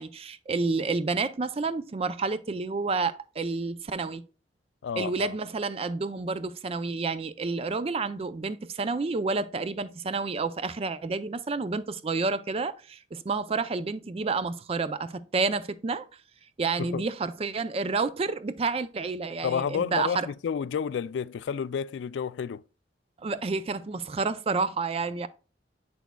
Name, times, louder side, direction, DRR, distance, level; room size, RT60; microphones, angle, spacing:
voice 1, 0.0-4.2 5.0-16.1 16.6-20.3 23.2-25.3, right 4 dB, 35° right, 0.4 m, -29 dB
voice 2, 4.8-5.3 16.8-17.1 19.4-22.6, left 7 dB, 80° left, 0.3 m, -30 dB
8.1 x 6.2 x 2.2 m
head